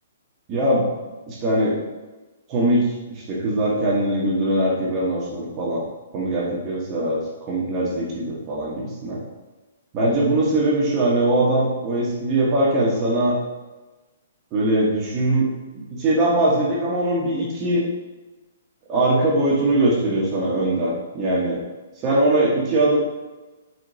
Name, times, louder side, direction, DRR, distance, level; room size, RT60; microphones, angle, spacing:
voice 1, 0.5-0.9 1.3-1.8 2.5-5.8 6.1-9.2 9.9-13.4 14.5-15.5 15.7-17.8 18.9-21.6 22.0-23.0, right 1 dB, 30° right, -5 dB, 1.1 m, -21 dB
4.7 x 3.5 x 2.7 m, 1.2 s
hypercardioid pair, 130°, 0 cm